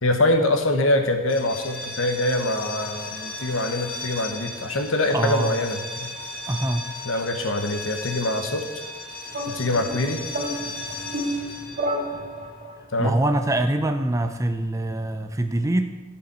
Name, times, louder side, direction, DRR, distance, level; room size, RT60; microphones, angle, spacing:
voice 1, 0.0-6.1 7.0-8.6 9.5-10.2 12.9-13.2, left 1 dB, 75° left, 5 dB, 1.1 m, -24 dB
sound 1, 1.2-12.9, left 2 dB, 45° left, 1.3 m, -36 dB
voice 2, 5.1-5.5 6.5-6.8 13.0-15.9, right 1 dB, 15° right, 8 dB, 0.5 m, -24 dB
sound 2, 9.3-12.8, right 1 dB, 40° right, 1.3 m, -31 dB
12.0 x 5.1 x 6.7 m, 1.2 s
head